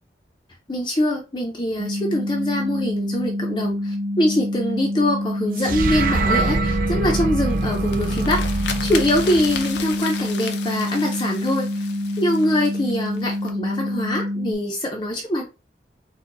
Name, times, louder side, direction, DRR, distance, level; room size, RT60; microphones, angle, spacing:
voice 1, 0.7-8.6 8.8-11.9 12.2-15.5, left 1 dB, 25° left, 0.6 m, -23 dB
sound 1, 1.8-14.5, left 1 dB, 90° right, 0.9 m, -27 dB
sound 2, 5.6-9.9, right 3 dB, 50° right, 0.4 m, -25 dB
sound 3, 7.4-13.5, left 6 dB, 75° left, 0.6 m, -35 dB
4.5 x 2.2 x 3.9 m
head